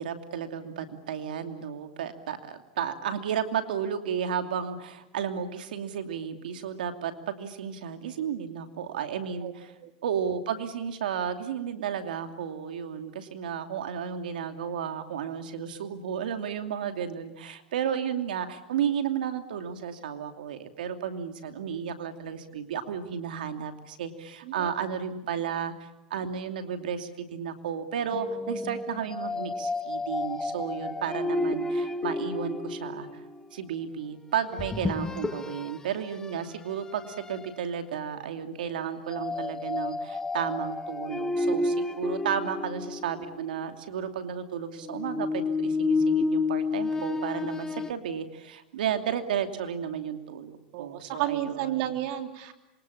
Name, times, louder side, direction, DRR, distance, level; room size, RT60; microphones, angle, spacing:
voice 1, 0.0-9.7 10.0-33.1 33.5-51.8, right 8 dB, 90° right, 7 dB, 2.7 m, -33 dB
sound 1, 28.1-33.4 34.5-35.8 36.2-36.4 37.0-37.5 39.1-43.5 44.8-47.9, left 3 dB, 15° left, 1.0 m, -30 dB
voice 2, 50.7-52.5, right 12 dB, 65° right, 7 dB, 3.1 m, -32 dB
27.0 x 23.5 x 8.7 m, 0.93 s
supercardioid pair, 115°, 5 cm